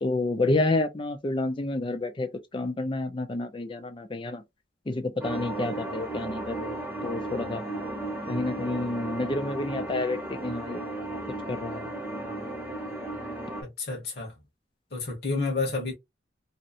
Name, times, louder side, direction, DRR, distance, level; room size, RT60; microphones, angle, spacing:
voice 1, 0.0-4.4 4.9-6.7 7.0-7.6 8.3-10.8 11.5-11.9, left 2 dB, 30° left, 0.4 m, -29 dB
sound 1, 5.2-13.6, right 2 dB, 10° right, 0.9 m, -35 dB
voice 2, 13.6-14.3 14.9-15.9, left 3 dB, 60° left, 1.1 m, -30 dB
2.7 x 2.1 x 2.5 m
head